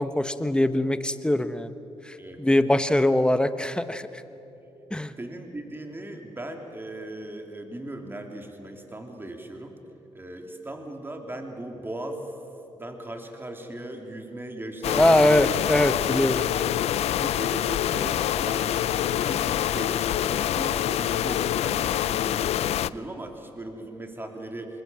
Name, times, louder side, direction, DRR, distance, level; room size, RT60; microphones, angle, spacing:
voice 1, 0.0-1.7 2.0-4.1 4.9-5.1 14.9-16.3, left 1 dB, 10° left, 11 dB, 1.2 m, -22 dB
voice 2, 5.2-9.8 10.1-12.3 12.7-15.5 16.0-16.3 17.1-24.8, right 1 dB, 20° right, 3 dB, 3.4 m, -38 dB
sound 1, 14.8-22.9, left 12 dB, 80° left, 0.5 m, -26 dB
25.0 x 21.5 x 7.6 m, 3.0 s
cardioid pair, 65°, 11 cm